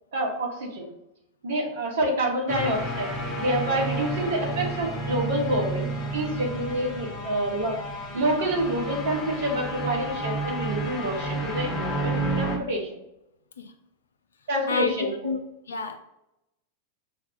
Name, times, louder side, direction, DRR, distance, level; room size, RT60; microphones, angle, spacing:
voice 1, 0.1-0.9 1.4-3.1 3.4-7.8 8.1-12.9 14.5-15.1, right 1 dB, 60° right, 1.1 m, -27 dB
sound 1, 2.5-12.6, right 2 dB, 35° left, 0.8 m, -31 dB
voice 2, 14.7-15.4 15.7-16.0, left 5 dB, 70° left, 0.4 m, -29 dB
5.9 x 2.3 x 2.5 m
figure-of-eight pair, 90°, 0 cm